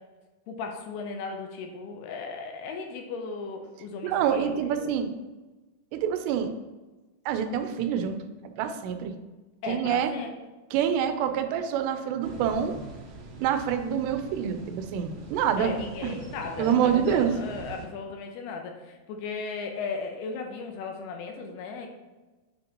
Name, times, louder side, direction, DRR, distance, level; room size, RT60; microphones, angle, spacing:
voice 1, 0.5-4.8 9.6-10.3 15.6-21.9, left 4 dB, 80° left, 3 dB, 2.7 m, -36 dB
voice 2, 4.0-5.1 5.9-6.5 7.3-9.1 9.7-10.1 10.7-12.8 13.4-15.7 16.0-16.2 16.6-17.3, right 8 dB, 90° right, 8 dB, 2.8 m, -26 dB
sound 1, 12.2-17.9, right 3 dB, 70° right, 2.4 m, -43 dB
8.4 x 5.2 x 2.9 m, 1.2 s
omnidirectional pair, 4.8 m